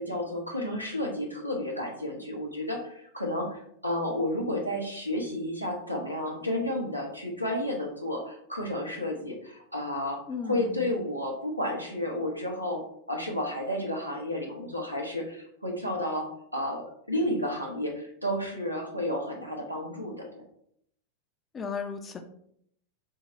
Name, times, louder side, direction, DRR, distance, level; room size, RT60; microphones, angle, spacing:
voice 1, 0.0-20.4, left 1 dB, 90° right, 0 dB, 0.8 m, -32 dB
voice 2, 10.3-10.9 21.5-22.2, left 5 dB, 20° left, 6 dB, 0.5 m, -35 dB
4.6 x 2.3 x 3.0 m, 0.69 s
figure-of-eight pair, 90°, 0 cm